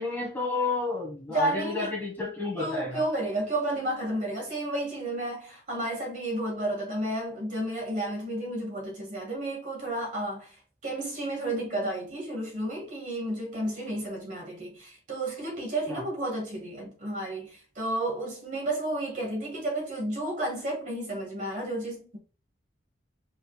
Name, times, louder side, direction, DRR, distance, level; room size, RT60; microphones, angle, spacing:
voice 1, 0.0-3.0 15.9-16.1, left 3 dB, 10° left, 1.4 m, -31 dB
voice 2, 1.3-2.0 2.6-10.5 10.8-22.2, right 1 dB, 40° right, 1.8 m, -32 dB
5.2 x 4.2 x 2.3 m
head